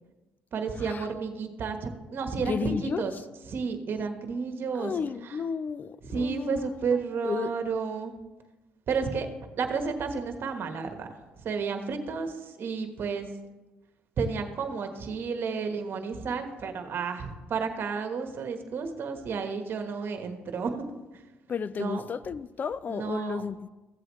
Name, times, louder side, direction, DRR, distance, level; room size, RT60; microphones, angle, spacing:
voice 1, 0.5-3.1 3.5-4.9 5.2-5.4 6.0-8.1 8.9-9.3 9.6-11.1 11.4-13.3 14.2-20.8 21.1-21.2 21.7-22.0 22.9-23.4, right 5 dB, 55° right, 1.3 m, -31 dB
voice 2, 2.3-3.0 4.8-6.8 7.2-7.5 21.5-23.7, left 6 dB, 40° left, 0.4 m, -33 dB
15.0 x 7.8 x 3.1 m
supercardioid pair, 65°, 4 cm